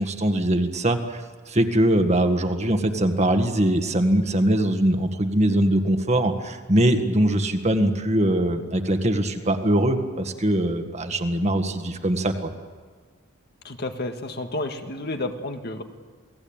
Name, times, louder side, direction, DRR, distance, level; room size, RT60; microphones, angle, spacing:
voice 1, 0.0-12.5, right 1 dB, 30° right, 7 dB, 1.8 m, -22 dB
voice 2, 13.6-15.8, left 2 dB, 50° left, 6 dB, 1.8 m, -31 dB
28.5 x 19.0 x 8.9 m, 1.5 s
head